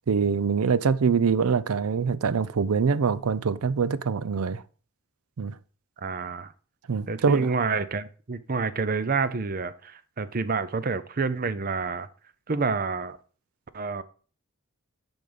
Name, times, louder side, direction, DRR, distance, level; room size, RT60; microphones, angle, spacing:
voice 1, 0.1-4.6 5.4-5.6 6.9-7.5, right 5 dB, 85° right, 0.5 m, -24 dB
voice 2, 6.0-6.5 7.1-12.1 12.5-13.2 13.7-14.0, right 4 dB, 40° right, 0.5 m, -28 dB
10.5 x 4.0 x 5.0 m
head